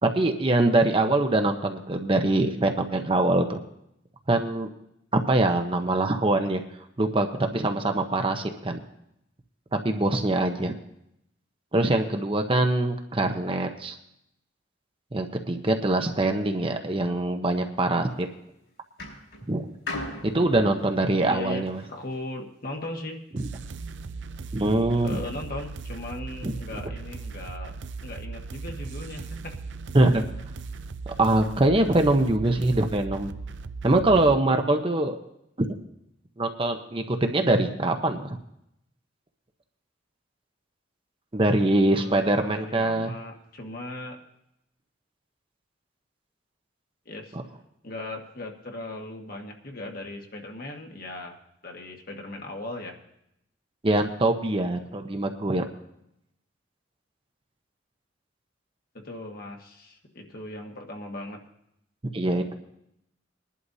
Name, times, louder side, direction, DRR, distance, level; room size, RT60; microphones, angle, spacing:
voice 1, 0.0-3.6 4.3-4.7 5.1-6.6 7.0-8.8 9.8-10.7 11.7-14.0 15.1-18.3 19.5-19.6 20.2-21.8 23.3-23.5 24.5-25.2 26.4-26.5 29.9-30.2 31.2-33.3 33.8-35.2 35.6-35.7 36.4-38.4 41.3-43.1 47.3-47.4 53.8-55.6 62.1-62.5, right 2 dB, 30° right, 5 dB, 0.8 m, -23 dB
sound 1, 18.0-18.4 19.0-22.2 23.0-23.1, left 2 dB, 65° left, 5.2 m, -39 dB
voice 2, 21.3-23.2 25.0-27.7 28.0-29.5 41.9-44.2 47.0-47.4 47.8-51.4 51.6-52.9 58.9-61.4, left 2 dB, 50° left, 1 dB, 1.5 m, -38 dB
sound 2, 23.4-34.3, right 4 dB, 70° right, 0.5 m, -38 dB
22.0 x 11.0 x 2.7 m, 0.79 s
head